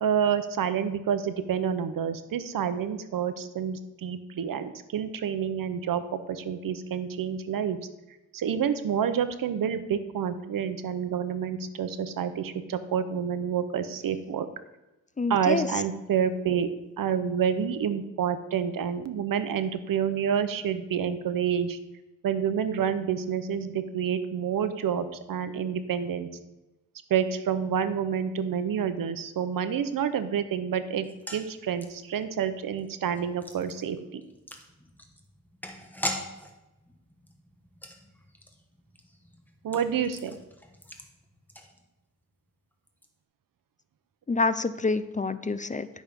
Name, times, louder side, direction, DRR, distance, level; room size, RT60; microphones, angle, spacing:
voice 1, 0.0-7.8 8.3-14.5 15.3-21.8 22.2-26.3 27.1-34.2 39.6-40.4, right 8 dB, 80° right, 11 dB, 0.9 m, -28 dB
voice 2, 15.2-15.7 44.3-45.9, left 3 dB, 25° left, 13 dB, 0.4 m, -27 dB
sound 1, 31.0-42.2 42.5-42.6 42.9-43.1, left 1 dB, 5° left, 1.2 m, -42 dB
11.0 x 6.3 x 5.2 m, 1.0 s
cardioid pair, 95°, 33 cm